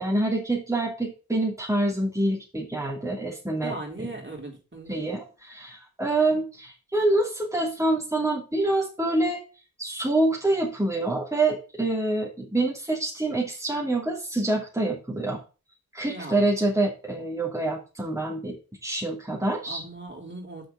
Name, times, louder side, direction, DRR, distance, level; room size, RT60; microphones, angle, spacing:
voice 1, 0.0-4.1 4.9-9.4 9.8-15.4 15.9-18.6 18.8-19.8, right 2 dB, 10° right, -2 dB, 2.8 m, -26 dB
voice 2, 3.6-5.0 16.1-16.5 19.7-20.7, right 2 dB, 30° right, 0 dB, 3.7 m, -38 dB
6.3 x 5.7 x 6.9 m, 0.33 s
cardioid pair, 45°, 36 cm